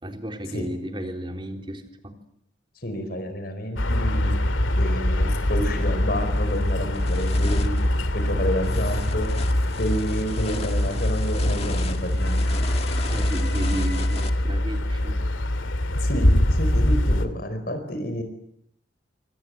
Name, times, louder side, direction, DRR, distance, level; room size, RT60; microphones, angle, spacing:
voice 1, 0.0-2.1 13.0-15.2, right 1 dB, 25° right, 4 dB, 3.9 m, -33 dB
voice 2, 2.8-4.3 4.7-7.8 8.1-9.3 9.8-12.5 15.9-18.2, equal, 50° left, 8 dB, 4.7 m, -29 dB
sound 1, 3.8-17.3, left 1 dB, 80° left, 2.3 m, -23 dB
sound 2, 5.4-5.6 6.1-14.3, left 3 dB, 30° left, 2.1 m, -37 dB
27.5 x 26.0 x 7.9 m, 0.72 s
head